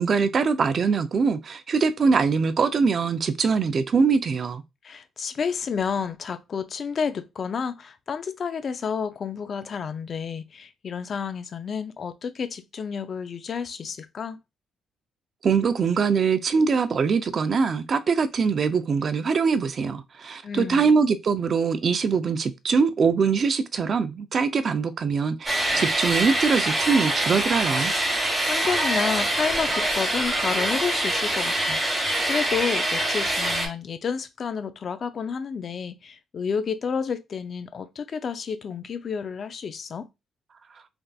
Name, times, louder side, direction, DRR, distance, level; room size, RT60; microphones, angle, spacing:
voice 1, 0.0-4.6 15.4-27.9, right 5 dB, 50° right, 0.4 m, -23 dB
voice 2, 4.8-14.4 20.4-20.9 28.2-40.1, left 6 dB, 50° left, 0.4 m, -30 dB
sound 1, 25.5-33.7, right 1 dB, 15° right, 1.5 m, -25 dB
3.4 x 2.5 x 2.3 m
cardioid pair, 90°, 0 cm